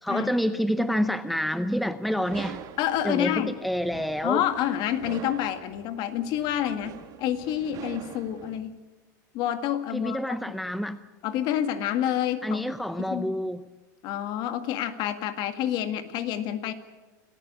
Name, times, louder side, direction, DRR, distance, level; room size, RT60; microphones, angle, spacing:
voice 1, 0.0-2.6 3.0-4.4 9.9-11.1 12.4-13.6, equal, ahead, 12 dB, 0.7 m, -28 dB
sound 1, 2.2-8.6, right 10 dB, 35° right, 1.9 m, -44 dB
voice 2, 2.8-3.6 4.2-8.8 9.3-10.2 11.2-12.6 13.1-13.4 14.0-16.7, left 11 dB, 45° left, 10 dB, 1.9 m, -28 dB
26.5 x 15.0 x 8.7 m, 1.2 s
supercardioid pair, 130°, 10 cm